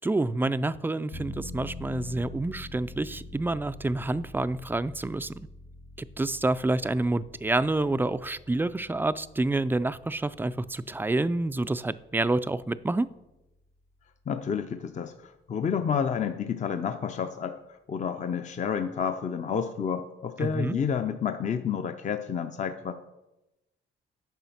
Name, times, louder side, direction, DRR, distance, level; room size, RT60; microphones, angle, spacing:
voice 1, 0.0-5.5 6.0-13.1 20.4-20.8, right 2 dB, 10° right, 14 dB, 0.3 m, -28 dB
sound 1, 1.1-13.6 14.0-14.1, left 2 dB, 90° left, 1.8 m, -45 dB
voice 2, 14.3-17.6 17.9-22.9, left 7 dB, 35° left, 8 dB, 0.5 m, -30 dB
9.3 x 5.5 x 5.8 m, 0.97 s
cardioid pair, 90°, 20 cm